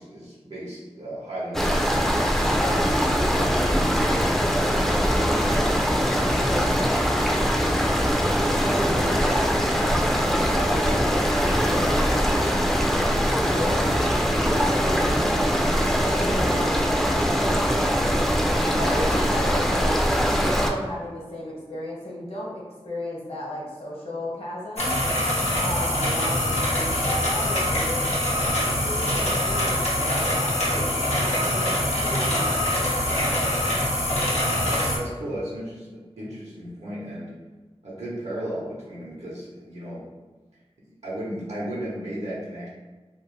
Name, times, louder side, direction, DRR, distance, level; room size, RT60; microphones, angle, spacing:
voice 1, 0.0-2.2 34.6-37.3 37.8-40.1 41.0-42.7, right 1 dB, 85° right, -6 dB, 0.8 m, -34 dB
sound 1, 1.5-20.7, equal, 5° left, 0.3 m, -22 dB
voice 2, 2.4-7.0 8.3-13.9 14.4-17.6 18.7-20.0 20.3-25.0 25.6-33.3, left 1 dB, 60° left, -5 dB, 0.9 m, -35 dB
sound 2, 24.8-35.0, left 1 dB, 90° left, 0.7 m, -24 dB
2.5 x 2.0 x 3.1 m, 1.3 s
wide cardioid pair, 50°, 11 cm